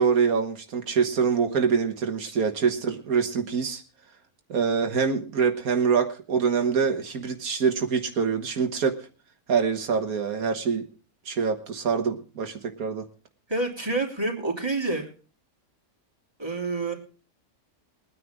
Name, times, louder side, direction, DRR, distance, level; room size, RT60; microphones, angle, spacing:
voice 1, 0.0-3.8 4.5-9.0 9.5-10.9 11.3-13.1, right 6 dB, 85° right, 5 dB, 1.8 m, -25 dB
voice 2, 13.5-15.1 16.4-16.9, right 2 dB, 15° right, 0 dB, 3.1 m, -28 dB
22.5 x 9.7 x 3.6 m, 0.36 s
omnidirectional pair, 1.5 m